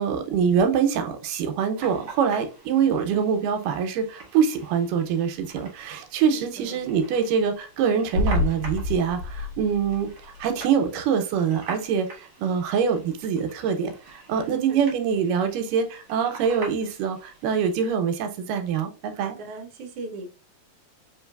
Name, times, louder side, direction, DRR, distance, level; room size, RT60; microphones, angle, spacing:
voice 1, 0.0-10.1 10.4-19.4, right 7 dB, 90° right, 2.3 m, -24 dB
sound 1, 1.8-17.9, right 3 dB, 50° right, 1.3 m, -45 dB
voice 2, 6.1-6.9 14.3-14.8 15.2-15.3 19.1-20.3, right 3 dB, 70° right, 1.4 m, -40 dB
Rhythmic Suspense Drums, 8.1-10.4, left 3 dB, 85° left, 2.2 m, -28 dB
5.0 x 3.2 x 2.3 m
omnidirectional pair, 3.8 m